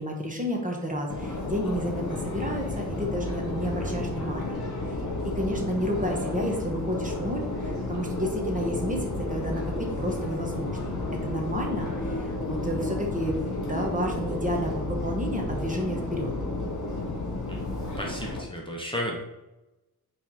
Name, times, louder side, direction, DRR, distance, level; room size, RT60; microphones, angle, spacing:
voice 1, 0.0-4.6 5.3-13.4 13.7-16.3, equal, 20° right, 0 dB, 1.2 m, -31 dB
Subway metro underground, 1.1-18.4, left 2 dB, 50° left, 2.1 m, -32 dB
voice 2, 18.0-19.2, equal, 15° left, -2 dB, 0.9 m, -33 dB
6.0 x 3.4 x 5.3 m, 0.97 s
wide cardioid pair, 150°, 38 cm